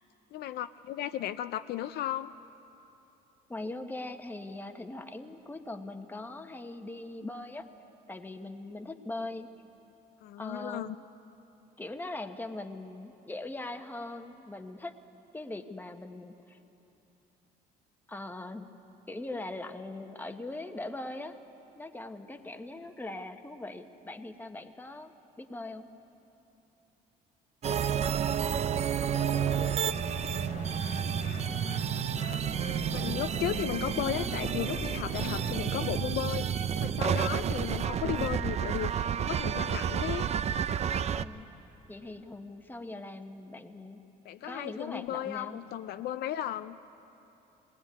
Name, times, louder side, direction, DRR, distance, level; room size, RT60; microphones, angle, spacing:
voice 1, 0.3-2.3 10.2-11.0 32.9-40.3 44.2-46.8, left 12 dB, 70° left, 11 dB, 0.5 m, -35 dB
voice 2, 3.5-7.7 8.1-9.5 10.4-11.0 11.8-14.9 15.3-16.6 18.1-18.7 19.1-21.4 21.7-25.1 25.4-25.9 41.1-41.5 41.9-44.0 44.4-45.6, left 2 dB, 10° left, 6 dB, 1.1 m, -41 dB
sound 1, 27.6-41.2, right 8 dB, 40° right, 0.5 m, -30 dB
sound 2, 29.1-35.6, left 6 dB, 50° left, 1.2 m, -44 dB
20.5 x 18.5 x 9.6 m, 3.0 s
cardioid pair, 110°, 17 cm